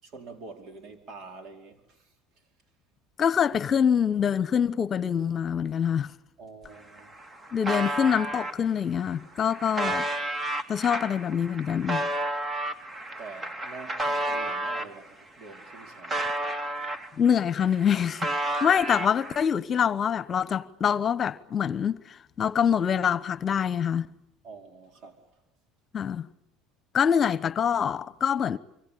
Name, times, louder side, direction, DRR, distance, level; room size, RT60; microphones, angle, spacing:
voice 1, 0.0-2.1 6.4-7.1 13.2-16.5 24.4-25.2, right 4 dB, 60° right, 4.8 m, -46 dB
voice 2, 3.2-6.1 7.5-10.1 10.7-12.1 17.2-18.3 18.6-24.1 25.9-26.3 26.9-28.6, left 8 dB, 40° left, 1.1 m, -25 dB
sound 1, 6.6-6.7 7.0-8.5 9.1-14.9 15.4-17.3 17.6-19.5, right 1 dB, 25° right, 2.3 m, -31 dB
26.0 x 24.5 x 8.6 m
supercardioid pair, 85°, 0 cm